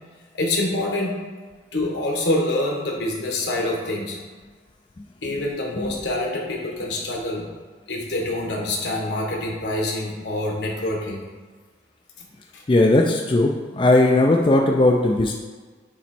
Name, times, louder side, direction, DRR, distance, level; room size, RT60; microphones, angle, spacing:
voice 1, 0.3-1.1 1.7-4.2 5.2-7.5 7.9-11.2 12.5-12.6, left 1 dB, 75° left, -1 dB, 1.4 m, -26 dB
voice 2, 12.7-15.3, left 2 dB, 30° left, 1 dB, 0.4 m, -18 dB
8.2 x 3.1 x 4.4 m, 1.4 s
head